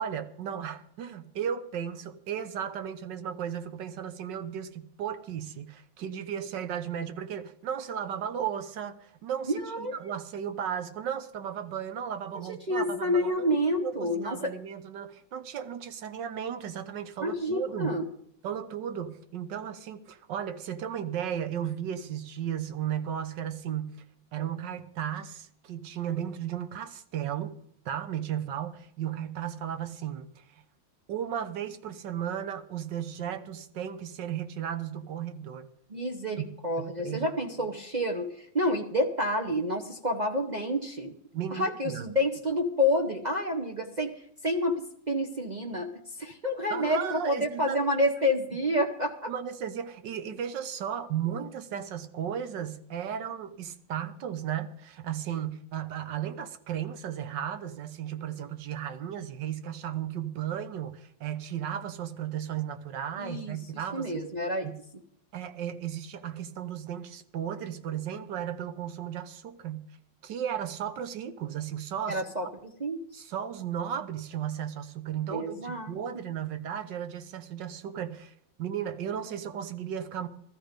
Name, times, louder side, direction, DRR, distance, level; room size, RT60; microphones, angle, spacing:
voice 1, 0.0-13.5 13.8-18.0 18.4-24.0 24.3-27.6 27.8-30.4 31.1-35.7 36.4-36.5 37.0-37.3 41.3-42.1 46.7-47.8 49.3-64.3 64.6-64.8 65.3-69.9 70.2-72.2 73.1-78.3 78.6-80.3, right 9 dB, 70° right, 11 dB, 1.5 m, -35 dB
voice 2, 9.5-9.9 12.5-14.5 17.2-18.1 35.9-41.1 41.5-45.9 46.2-49.3 63.2-63.6 63.9-64.6 72.1-72.5 72.8-73.0 75.3-75.9, left 1 dB, 40° right, 2 dB, 0.6 m, -29 dB
15.0 x 13.5 x 5.1 m, 0.67 s
omnidirectional pair, 2.1 m